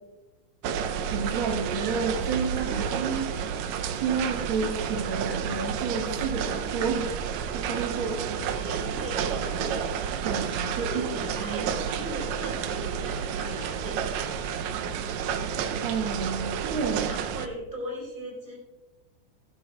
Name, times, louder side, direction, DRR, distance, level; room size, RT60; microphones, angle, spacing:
sound 1, 0.6-17.5, right 7 dB, 75° right, 1.8 m, -30 dB
voice 1, 1.1-3.3 3.8-8.2 10.2-11.7 15.8-17.1, right 5 dB, 55° right, -1 dB, 1.7 m, -31 dB
voice 2, 8.3-10.1 10.7-14.8 16.8-18.5, equal, 15° right, -3 dB, 4.6 m, -39 dB
16.5 x 11.5 x 2.4 m, 1.1 s
omnidirectional pair, 3.5 m